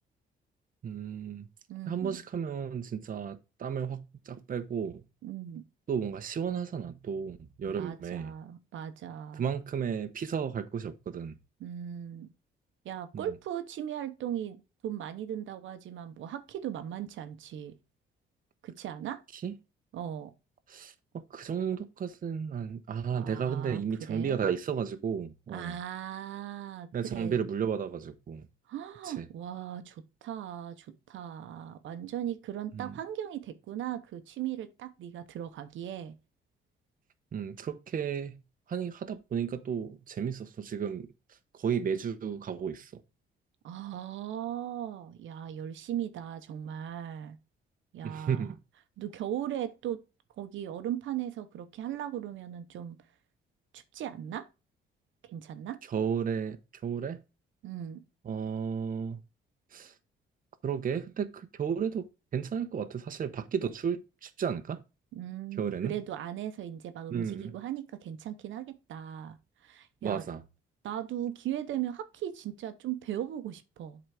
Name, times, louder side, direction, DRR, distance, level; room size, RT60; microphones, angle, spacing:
voice 1, 0.8-1.5 1.9-5.0 5.9-8.3 9.4-11.3 13.1-13.3 19.3-19.5 20.7-25.8 26.9-28.4 29.0-29.3 32.7-32.9 37.3-38.3 38.7-41.1 41.5-43.0 48.0-48.6 55.9-57.2 58.2-59.2 59.7-59.9 60.6-64.8 65.6-65.9 67.1-67.5 70.0-70.4, right 7 dB, 45° right, 0.9 m, -33 dB
voice 2, 1.7-2.2 5.2-5.6 7.6-9.4 11.6-12.3 12.8-17.7 18.6-19.2 19.9-20.3 23.2-23.8 24.1-24.4 25.5-27.4 28.7-36.1 43.6-47.4 47.9-48.5 49.0-50.0 50.4-53.0 53.7-54.5 55.2-55.8 57.6-58.0 65.1-69.4 69.6-70.2 70.8-74.0, right 10 dB, 75° right, 0.9 m, -38 dB
7.7 x 4.0 x 4.8 m
cardioid pair, 90°, 20 cm